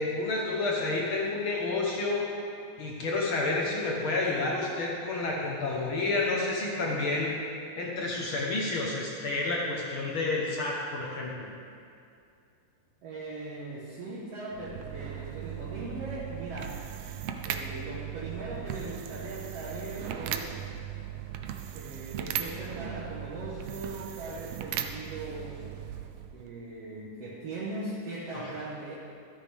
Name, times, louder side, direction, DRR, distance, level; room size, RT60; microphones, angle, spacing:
voice 1, 0.0-2.3 2.8-7.3 7.8-11.5 28.3-28.5, left 2 dB, 60° left, -2 dB, 1.4 m, -30 dB
voice 2, 13.0-16.8 17.4-20.7 21.7-25.6 26.3-28.9, right 2 dB, 55° right, -5 dB, 2.1 m, -39 dB
sound 1, 14.5-26.5, right 10 dB, 85° right, 1.4 m, -38 dB
13.0 x 13.0 x 3.5 m, 2.4 s
omnidirectional pair, 3.7 m